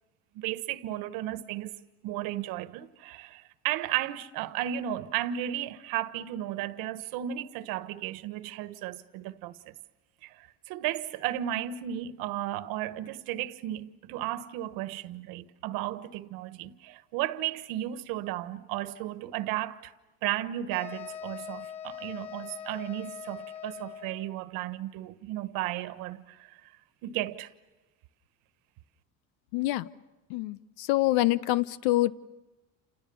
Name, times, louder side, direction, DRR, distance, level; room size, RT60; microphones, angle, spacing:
voice 1, 0.3-9.7 10.2-19.9 20.2-26.7 27.0-27.5, right 13 dB, 75° right, 1.3 m, -34 dB
sound 1, 20.7-24.4, left 9 dB, 55° left, 1.1 m, -42 dB
voice 2, 29.5-29.9 30.3-32.1, left 17 dB, 90° left, 0.9 m, -26 dB
29.5 x 28.5 x 7.0 m
cardioid pair, 135°, 34 cm